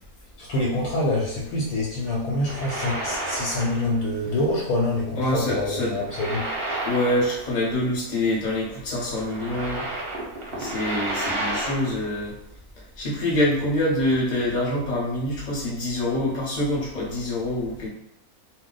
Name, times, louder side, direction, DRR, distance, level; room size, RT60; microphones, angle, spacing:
voice 1, 0.4-6.4, left 1 dB, 80° left, -3 dB, 1.1 m, -26 dB
sound 1, 2.3-4.0 4.3-4.5 5.8-7.7 8.0-8.1 9.0-12.0, right 1 dB, 50° right, 0.7 m, -31 dB
voice 2, 5.2-6.0 6.8-9.9 10.5-12.3 13.0-17.9, left 1 dB, 35° left, -5 dB, 0.8 m, -25 dB
2.3 x 2.1 x 3.8 m, 0.79 s
omnidirectional pair, 1.6 m